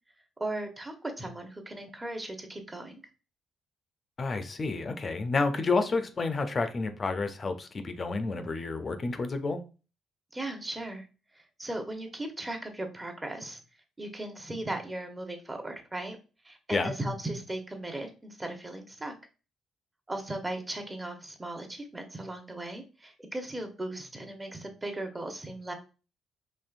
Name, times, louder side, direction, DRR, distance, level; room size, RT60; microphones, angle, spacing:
voice 1, 0.4-3.0 10.3-11.1 11.3-13.6 14.0-16.2 16.4-19.1 20.1-25.7, right 1 dB, 15° right, 0.9 m, -37 dB
voice 2, 4.2-9.6 16.7-16.9, left 3 dB, 35° left, 0.5 m, -30 dB
4.4 x 3.0 x 2.5 m
cardioid pair, 90°, 0 cm